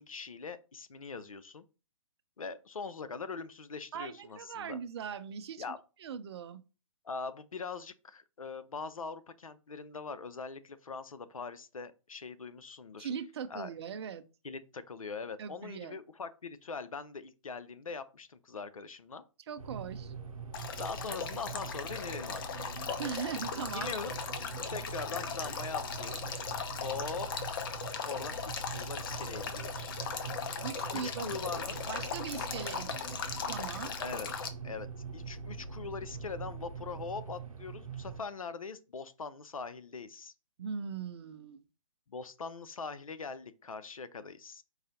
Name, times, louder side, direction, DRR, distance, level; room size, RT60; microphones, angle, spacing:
voice 1, 0.0-1.6 2.4-4.8 5.6-5.8 7.0-13.1 13.5-13.7 14.4-19.2 20.8-22.7 23.7-24.1 24.7-26.4 26.8-27.3 28.0-29.9 30.9-31.8 34.0-34.3 34.6-34.9 35.1-40.3 42.1-44.6, left 4 dB, 85° left, 0.5 m, -42 dB
voice 2, 3.9-5.6 6.0-6.6 13.0-14.2 15.4-16.0 19.5-20.1 23.0-23.9 30.6-31.4 31.7-33.9 40.6-41.6, right 7 dB, 50° right, 0.5 m, -40 dB
sound 1, 19.6-38.2, right 4 dB, 90° right, 0.7 m, -43 dB
Male speech man speaking / Stream / Trickle dribble, 20.5-34.5, left 6 dB, 40° left, 0.6 m, -38 dB
4.8 x 2.6 x 3.8 m
figure-of-eight pair, 130°, 17 cm